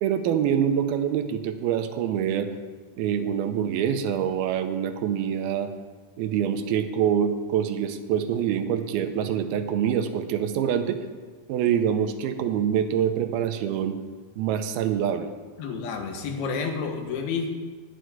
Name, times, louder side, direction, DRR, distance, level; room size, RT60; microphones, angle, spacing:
voice 1, 0.0-2.5 3.0-5.7 6.2-11.0 11.5-14.0 14.4-15.3, right 9 dB, 85° right, 8 dB, 2.8 m, -25 dB
voice 2, 15.6-17.5, left 5 dB, 90° left, 4 dB, 3.3 m, -30 dB
11.5 x 6.5 x 9.4 m, 1.4 s
omnidirectional pair, 4.3 m